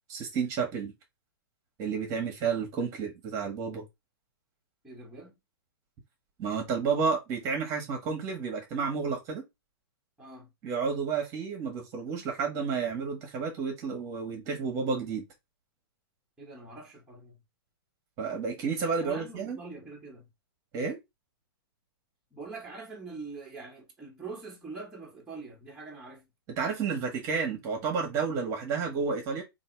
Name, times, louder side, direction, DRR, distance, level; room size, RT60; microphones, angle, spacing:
voice 1, 0.1-0.9 1.8-3.8 6.4-9.4 10.6-15.2 18.2-19.6 20.7-21.0 26.5-29.4, right 5 dB, 25° right, 1.3 m, -31 dB
voice 2, 4.8-5.4 10.2-10.5 16.4-17.4 19.0-20.3 22.3-26.3, right 3 dB, 5° right, 1.3 m, -44 dB
3.2 x 2.6 x 4.5 m
hypercardioid pair, 155°, 13 cm